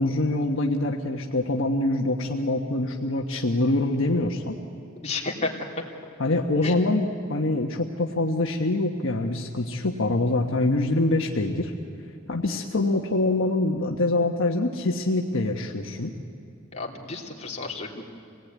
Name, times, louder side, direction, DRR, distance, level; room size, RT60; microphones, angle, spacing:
voice 1, 0.0-4.6 6.2-11.7 12.3-16.1, left 2 dB, 65° left, 1 dB, 1.3 m, -25 dB
voice 2, 5.0-5.5 6.6-6.7 16.7-18.0, left 3 dB, 30° left, -1 dB, 3.0 m, -31 dB
26.5 x 18.5 x 9.4 m, 2.7 s
head